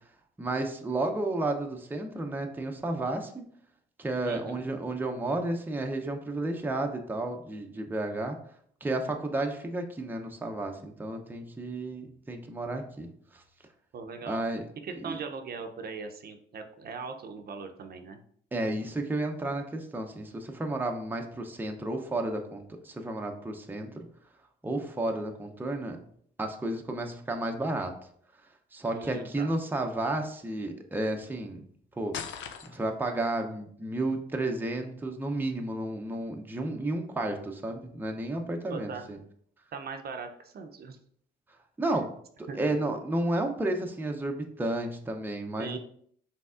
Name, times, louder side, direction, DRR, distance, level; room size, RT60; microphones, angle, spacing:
voice 1, 0.4-3.4 4.0-8.4 8.8-13.1 13.3-13.4 14.3-14.7 15.0-15.2 18.5-24.1 24.6-26.0 26.4-27.9 28.7-31.6 32.0-32.2 32.7-39.2 41.8-42.1 42.4-45.8, right 2 dB, 10° right, 3 dB, 0.6 m, -32 dB
voice 2, 4.2-4.6 13.9-14.4 14.8-18.2 28.9-29.5 38.7-39.1 39.7-41.0 42.5-42.6 45.6-45.8, right 4 dB, 50° right, 6 dB, 0.6 m, -40 dB
sound 1, 32.1-33.1, left 8 dB, 70° left, 0.5 m, -39 dB
5.2 x 3.4 x 2.4 m, 0.62 s
cardioid pair, 90°, 20 cm